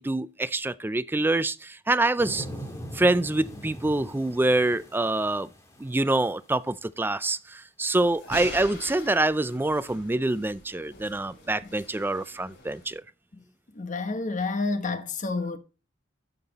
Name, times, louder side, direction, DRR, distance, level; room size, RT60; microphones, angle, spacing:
voice 1, 0.0-2.5 2.9-5.5 5.8-13.0, right 2 dB, 10° right, 0.4 m, -26 dB
sound 1, 2.2-6.2 6.7-6.8, equal, 15° left, 1.9 m, -41 dB
sound 2, 8.0-12.9, left 2 dB, 65° left, 3.3 m, -44 dB
voice 2, 13.8-15.6, left 3 dB, 40° left, 1.1 m, -29 dB
12.5 x 5.7 x 4.1 m
head